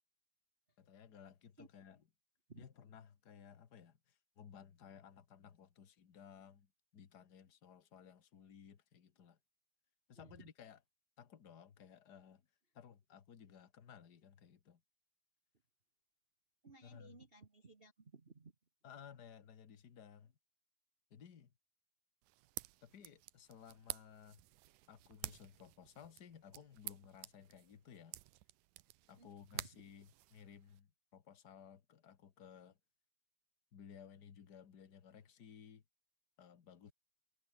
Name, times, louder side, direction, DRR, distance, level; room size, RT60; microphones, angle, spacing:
voice 1, 0.8-2.1 2.5-9.4 10.1-10.8 11.2-12.4 12.7-14.8 16.8-17.2 18.8-20.3 21.1-21.5 22.8-24.4 24.9-28.2 29.1-32.8 33.7-35.8 36.4-36.9, left 8 dB, 40° left, 1.6 m, -58 dB
voice 2, 10.1-10.5 16.6-18.5 29.2-29.7, right 4 dB, 60° right, 0.6 m, -59 dB
sound 1, 22.2-30.8, right 18 dB, 80° right, 2.3 m, -51 dB
omnidirectional pair, 3.7 m